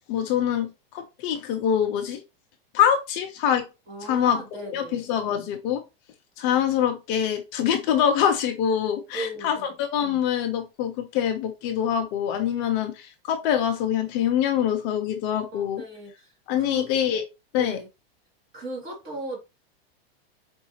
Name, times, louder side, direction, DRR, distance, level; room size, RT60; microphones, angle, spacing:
voice 1, 0.1-2.2 2.7-3.7 4.0-4.4 4.6-5.8 6.4-15.8 16.5-17.2 17.5-17.8, left 9 dB, 40° left, 0.6 m, -24 dB
voice 2, 3.9-5.0 9.1-9.7 15.5-16.3 16.6-16.9 17.6-17.9 18.5-19.4, right 2 dB, 30° right, 1.8 m, -36 dB
4.8 x 2.7 x 2.9 m
supercardioid pair, 140°, 30 cm